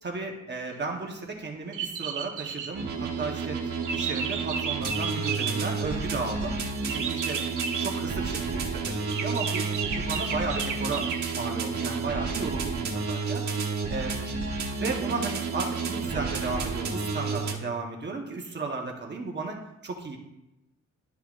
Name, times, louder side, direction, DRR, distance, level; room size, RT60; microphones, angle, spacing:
voice 1, 0.0-3.6 3.9-6.6 6.9-7.4 7.8-9.6 10.0-13.5 13.9-14.1 14.8-20.2, right 3 dB, 35° right, 1 dB, 0.9 m, -34 dB
sound 1, 1.7-2.9 3.8-5.8 6.9-8.0 9.1-11.5, right 6 dB, 85° right, 0.7 m, -33 dB
sound 2, 2.7-17.5, right 4 dB, 65° right, 1.2 m, -31 dB
11.5 x 5.6 x 2.4 m, 0.93 s
wide cardioid pair, 130°, 30 cm